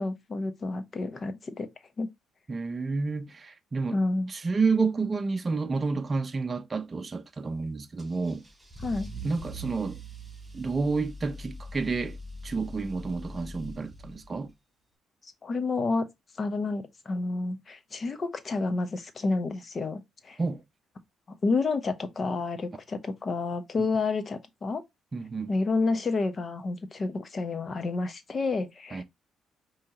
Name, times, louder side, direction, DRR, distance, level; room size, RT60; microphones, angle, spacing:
voice 1, 0.0-1.7 2.0-2.1 3.9-4.3 8.8-9.1 15.2-16.1 16.4-20.4 21.4-24.8 25.5-29.0, left 3 dB, 40° left, 0.9 m, -30 dB
voice 2, 2.5-4.0 4.3-8.5 9.2-10.0 10.5-12.2 12.4-14.5 20.4-20.6 23.8-23.9 25.1-25.5 28.9-29.0, right 4 dB, 30° right, 0.6 m, -30 dB
Car / Engine starting / Accelerating revving vroom, 8.0-14.5, equal, 15° right, 3.1 m, -42 dB
5.3 x 3.1 x 2.8 m
cardioid pair, 90°, 0 cm